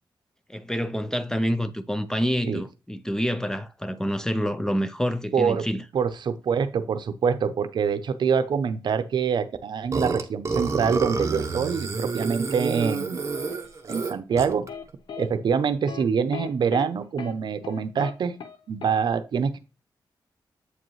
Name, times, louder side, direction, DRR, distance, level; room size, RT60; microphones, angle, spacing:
voice 1, 0.5-5.8, equal, 5° left, 0.5 m, -27 dB
voice 2, 5.3-5.7 5.9-13.3 13.9-14.7 15.2-18.4 18.7-19.6, right 6 dB, 70° right, 0.6 m, -25 dB
Burping eructation, 9.9-14.7, right 4 dB, 40° right, 0.9 m, -29 dB
sound 1, 13.3-14.8 15.1-15.3 15.9-16.0 16.3-16.9 17.2-17.3 17.6-18.1 18.4-18.6 18.8-19.0, left 7 dB, 85° left, 0.8 m, -37 dB
7.9 x 5.2 x 3.1 m
wide cardioid pair, 100°, 8 cm